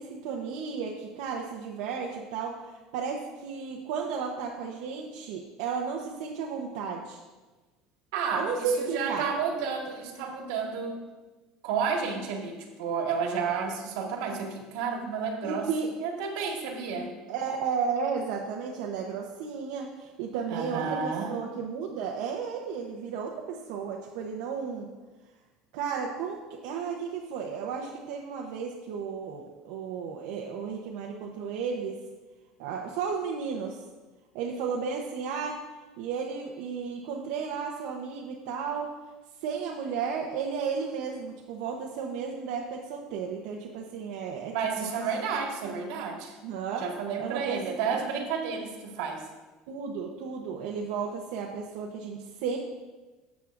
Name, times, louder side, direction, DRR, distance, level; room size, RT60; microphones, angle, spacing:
voice 1, 0.0-7.2 8.3-9.3 15.4-15.9 17.3-24.9 25.7-32.0 32.6-33.8 34.3-35.6 36.0-38.9 39.4-45.0 46.4-46.8 47.2-47.6 49.7-52.6, right 6 dB, 70° right, -1 dB, 0.8 m, -33 dB
voice 2, 8.1-11.0 11.6-15.7 16.0-17.1 20.5-21.3 44.5-46.3 46.8-49.2, right 5 dB, 85° right, 1 dB, 1.6 m, -31 dB
13.0 x 7.1 x 2.6 m, 1.2 s
cardioid pair, 175°, 2 cm